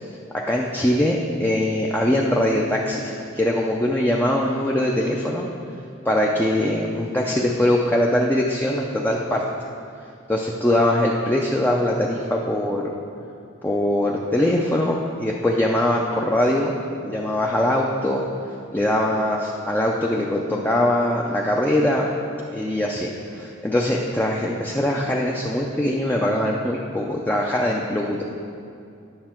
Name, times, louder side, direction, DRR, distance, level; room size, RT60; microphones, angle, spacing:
voice 1, 0.3-5.5 6.0-9.4 10.3-12.9 13.6-16.8 17.0-18.2 18.7-22.1 22.5-23.1 23.3-28.2, left 1 dB, 10° left, -2 dB, 0.4 m, -22 dB
9.6 x 6.5 x 4.4 m, 2.5 s
head